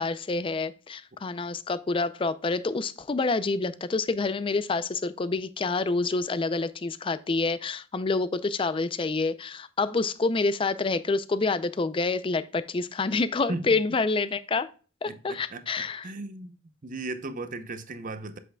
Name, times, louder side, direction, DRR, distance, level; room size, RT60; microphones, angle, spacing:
voice 1, 0.0-14.7 15.0-16.0, left 3 dB, 30° left, 0.4 m, -27 dB
voice 2, 15.1-16.6 16.8-18.4, right 2 dB, 45° right, 0.7 m, -36 dB
7.8 x 6.2 x 2.2 m
head